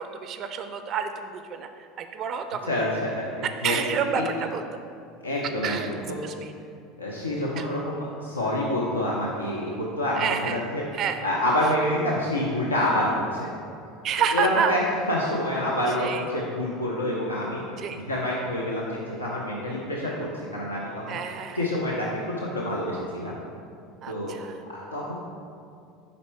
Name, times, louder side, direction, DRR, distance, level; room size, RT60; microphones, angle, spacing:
voice 1, 0.0-2.7 3.4-4.6 5.6-5.9 6.2-6.5 7.6-7.7 10.2-10.6 10.9-11.2 14.0-14.8 15.9-16.3 17.8-18.0 21.1-21.7 24.0-24.6, right 7 dB, 45° right, 8 dB, 0.3 m, -29 dB
voice 2, 2.7-4.2 5.2-6.2 7.0-10.8 11.2-13.5 14.3-14.8 15.1-17.6 18.1-21.2 21.6-22.1 22.4-23.4 24.1-24.4 24.7-25.1, left 1 dB, 90° left, -4 dB, 0.6 m, -27 dB
5.2 x 4.2 x 4.5 m, 2.4 s
figure-of-eight pair, 75°, 0 cm